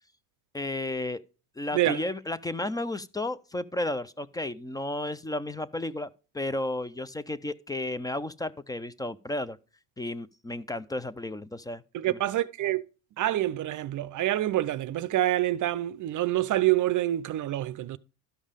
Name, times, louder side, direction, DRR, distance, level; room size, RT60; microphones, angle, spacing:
voice 1, 0.5-1.2 1.6-6.1 6.3-9.6 10.0-12.2, left 2 dB, 10° left, 0.4 m, -33 dB
voice 2, 11.9-12.8 13.2-18.0, right 14 dB, 40° right, 0.6 m, -27 dB
12.5 x 5.4 x 5.1 m
supercardioid pair, 100°, 46 cm